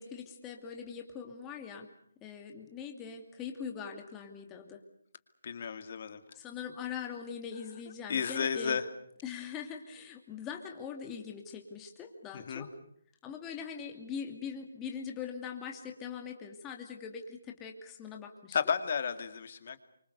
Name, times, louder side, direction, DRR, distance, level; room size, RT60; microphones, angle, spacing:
voice 1, 0.0-1.9 2.2-4.8 6.3-8.8 9.2-12.7 13.2-18.6, left 7 dB, 15° left, 2 dB, 2.6 m, -42 dB
voice 2, 5.4-6.2 8.1-8.9 12.3-12.7 18.5-19.8, left 6 dB, 45° left, 9 dB, 2.4 m, -32 dB
27.5 x 25.5 x 6.9 m, 0.65 s
hypercardioid pair, 160°, 0 cm